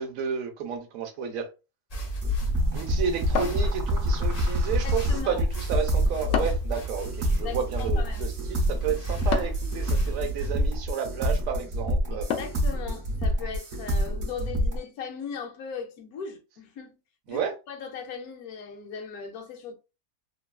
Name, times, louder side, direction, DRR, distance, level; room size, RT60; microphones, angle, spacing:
voice 1, 0.0-1.5 2.7-12.3 17.3-17.6, right 7 dB, 75° right, 1.1 m, -31 dB
sound 1, 1.9-10.9, right 3 dB, 40° left, 0.5 m, -35 dB
sound 2, 2.2-14.8, equal, 55° right, 1.1 m, -27 dB
sound 3, 3.4-4.2 6.3-6.8 9.3-9.7 12.3-12.7, left 7 dB, 70° left, 0.8 m, -30 dB
voice 2, 4.8-5.4 7.2-8.3 12.1-16.9 17.3-19.7, left 6 dB, 85° left, 1.1 m, -38 dB
3.0 x 2.3 x 2.3 m
omnidirectional pair, 1.5 m